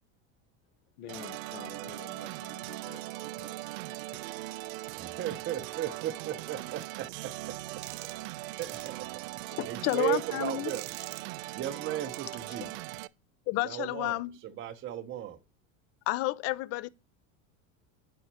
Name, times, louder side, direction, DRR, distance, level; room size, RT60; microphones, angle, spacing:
voice 1, 1.0-4.8, left 9 dB, 75° left, 1.2 m, -50 dB
sound 1, 1.1-13.1, right 19 dB, 75° right, 0.5 m, -40 dB
voice 2, 5.0-7.1 8.6-9.2 9.6-10.9 11.5-12.7 13.6-15.4, right 12 dB, 30° right, 0.8 m, -35 dB
sound 2, 6.8-6.9 7.8-8.3 8.6-8.9 9.9-10.0 10.7-11.2 12.1-12.2, right 17 dB, 55° right, 0.9 m, -44 dB
voice 3, 9.5-10.7 12.6-12.7 13.5-14.4 16.1-16.9, left 18 dB, 40° left, 0.4 m, -31 dB
9.1 x 5.2 x 2.9 m
supercardioid pair, 130°, 40 cm